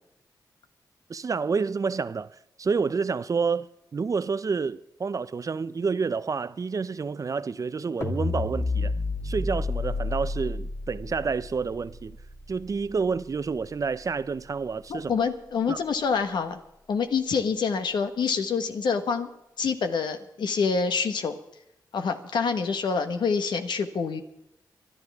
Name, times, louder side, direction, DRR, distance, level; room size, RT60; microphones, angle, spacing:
voice 1, 1.1-8.9 9.2-12.2 12.5-15.2 15.7-15.8, right 5 dB, 45° right, 0.6 m, -29 dB
sound 1, 8.0-14.3, left 3 dB, 35° left, 2.2 m, -32 dB
voice 2, 14.9-16.6 16.9-19.3 19.6-21.4 21.9-24.2, left 5 dB, 80° left, 1.4 m, -26 dB
25.5 x 11.5 x 3.6 m
cardioid pair, 60°, 8 cm